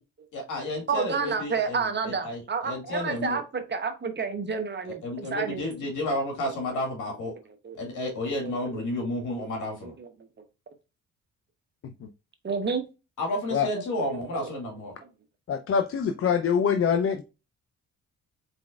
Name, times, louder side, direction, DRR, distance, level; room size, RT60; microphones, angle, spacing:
voice 1, 0.3-3.4 4.8-7.3 7.8-9.9 13.2-14.9, left 1 dB, 80° left, 2 dB, 2.2 m, -31 dB
voice 2, 0.9-5.7 6.6-6.7 7.6-7.8 8.4-8.8 9.8-10.1 12.4-12.8 14.1-14.6 15.0-15.1, right 5 dB, 35° right, 7 dB, 1.0 m, -30 dB
voice 3, 15.5-17.2, left 7 dB, 45° left, 7 dB, 0.5 m, -24 dB
4.3 x 3.9 x 2.4 m, 0.28 s
cardioid pair, 90°, 30 cm